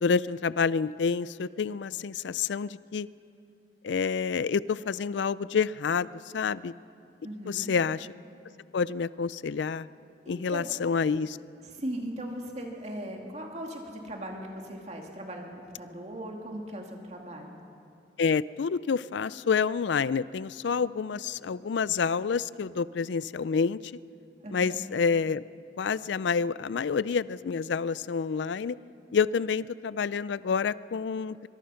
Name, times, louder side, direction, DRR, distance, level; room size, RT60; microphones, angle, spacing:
voice 1, 0.0-3.1 3.8-6.1 6.3-6.7 7.5-8.1 8.7-9.9 10.3-11.4 18.2-23.8 24.5-25.4 25.8-28.8 29.1-31.5, left 5 dB, 75° left, 18 dB, 0.4 m, -28 dB
voice 2, 7.2-7.7 10.2-10.8 11.6-17.6 24.4-24.8, right 1 dB, 35° right, 1 dB, 2.4 m, -39 dB
23.5 x 23.0 x 5.7 m, 2.5 s
head